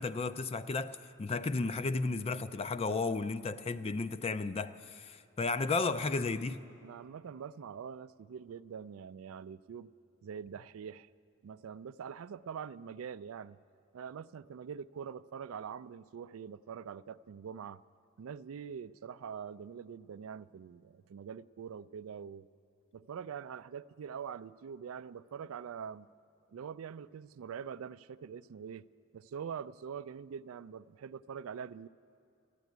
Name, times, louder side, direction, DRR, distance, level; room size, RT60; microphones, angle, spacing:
voice 1, 0.0-6.7, left 3 dB, 30° left, 0.4 m, -33 dB
voice 2, 6.8-9.9 10.2-11.1 11.4-13.6 13.9-17.8 18.2-22.5 22.9-26.1 26.5-28.9 29.1-31.9, right 7 dB, 80° right, 0.4 m, -44 dB
14.0 x 9.9 x 9.3 m
head